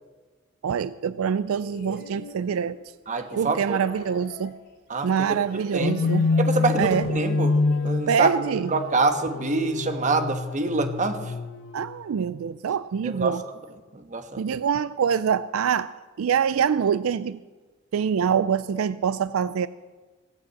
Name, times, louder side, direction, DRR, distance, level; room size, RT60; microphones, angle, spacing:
voice 1, 0.6-2.8 3.4-4.5 5.0-6.3 6.7-7.1 8.1-8.7 11.7-13.4 14.4-15.9 16.2-17.4 17.9-19.7, right 7 dB, 80° right, 15 dB, 0.4 m, -25 dB
sound 1, 1.5-9.9 10.9-11.0, left 1 dB, 50° left, 2.8 m, -44 dB
voice 2, 3.1-3.8 4.9-5.9 6.4-8.3 8.7-11.2 13.0-13.4 13.9-14.6, right 3 dB, 35° right, 7 dB, 1.2 m, -26 dB
sound 2, 5.8-12.0, left 3 dB, 65° left, 0.7 m, -27 dB
17.5 x 8.5 x 7.6 m, 1.3 s
head